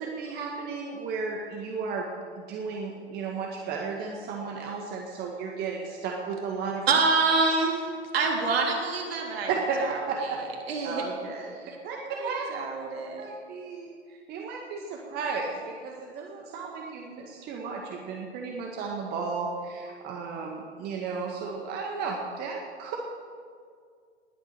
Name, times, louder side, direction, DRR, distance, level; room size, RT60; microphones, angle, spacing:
voice 1, 0.0-2.1 2.4-6.9 9.5-10.5 10.8-11.6 11.8-12.5 13.2-23.0, right 4 dB, 25° right, 0 dB, 1.8 m, -34 dB
voice 2, 6.9-9.5 9.9-10.0 10.7-11.0 12.1-13.2, right 4 dB, 60° right, 0 dB, 3.8 m, -26 dB
20.0 x 9.1 x 6.8 m, 2.1 s
figure-of-eight pair, 110°, 35 cm